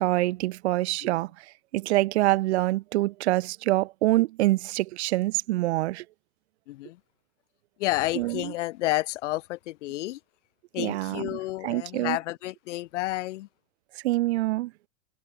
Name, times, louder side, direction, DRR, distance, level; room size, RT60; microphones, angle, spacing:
voice 1, 0.0-6.0 8.2-8.5 10.8-12.2 13.9-14.7, right 18 dB, 65° right, 1.0 m, -26 dB
voice 2, 6.7-7.0 7.8-10.2 10.7-13.5, left 17 dB, 75° left, 0.7 m, -30 dB
supercardioid pair, 160°, 36 cm